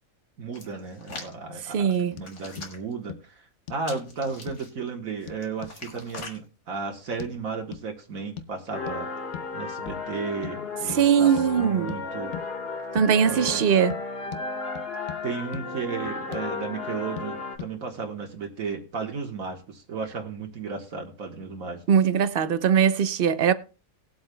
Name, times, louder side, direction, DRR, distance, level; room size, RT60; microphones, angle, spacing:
voice 1, 0.4-12.3 13.2-13.6 15.2-21.8, right 5 dB, 75° right, 1.8 m, -34 dB
Hands, 0.5-1.3 1.9-2.9 3.8-4.7 5.2-6.4 7.1-7.3, left 3 dB, 90° left, 2.5 m, -42 dB
voice 2, 1.6-2.1 10.9-12.0 12.9-13.9 21.9-23.5, right 7 dB, 55° right, 0.7 m, -21 dB
sound 1, 2.2-2.3 2.6-2.7 3.1-3.2 3.7-3.9 4.5-4.6 5.3-5.8 6.2-6.3 7.2-7.3 7.7-7.9 8.4-8.5 8.9-9.0 9.3-9.5 9.9-10.1 10.4-10.6 10.9-11.0 11.4-11.5 11.9-12.0 12.3-12.5 13.0-13.1 13.5-13.6 13.9-14.0 14.3-14.5 14.8-15.2 15.5-15.6 16.1-16.5 17.2-17.3 17.6-17.7, left 8 dB, 60° left, 1.0 m, -39 dB
sound 2, 8.7-17.6, left 3 dB, 45° left, 1.6 m, -34 dB
19.5 x 7.9 x 2.2 m
omnidirectional pair, 1.5 m